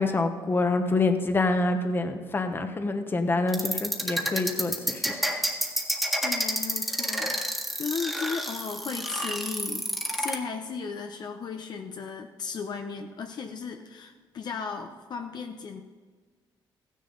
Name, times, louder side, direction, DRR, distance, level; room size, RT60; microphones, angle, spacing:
voice 1, 0.0-5.1, left 3 dB, 25° left, 7 dB, 1.1 m, -26 dB
sound 1, 3.5-10.4, equal, ahead, 1.7 m, -28 dB
voice 2, 6.2-7.3 7.8-9.9 10.2-15.8, left 5 dB, 55° left, 5 dB, 0.8 m, -35 dB
14.5 x 10.0 x 4.0 m, 1.5 s
cardioid pair, 105°, 9 cm